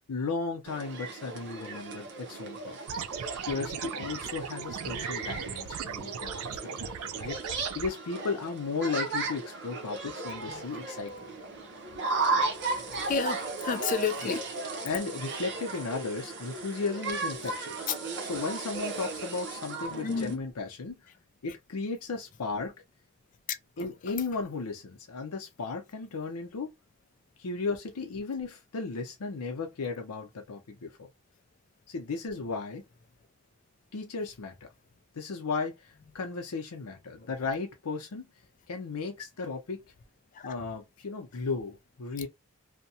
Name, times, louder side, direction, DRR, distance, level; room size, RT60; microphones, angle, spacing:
voice 1, 0.1-3.0 3.4-11.1 14.2-14.3 14.8-17.9 18.3-21.0 21.4-22.7 23.8-26.7 27.4-31.1 31.9-32.8 33.9-34.5 35.1-38.3 38.7-39.8 40.4-42.3, left 4 dB, 85° left, 0.6 m, -35 dB
sound 1, 0.7-20.4, right 3 dB, 55° right, 0.8 m, -36 dB
sound 2, 2.9-7.9, right 8 dB, 70° right, 0.4 m, -38 dB
voice 2, 12.2-12.6 12.9-14.4 17.9-18.0 20.0-20.4 23.5-24.2 37.2-37.3 40.3-40.7, left 6 dB, 35° left, 0.3 m, -33 dB
2.7 x 2.2 x 2.6 m
head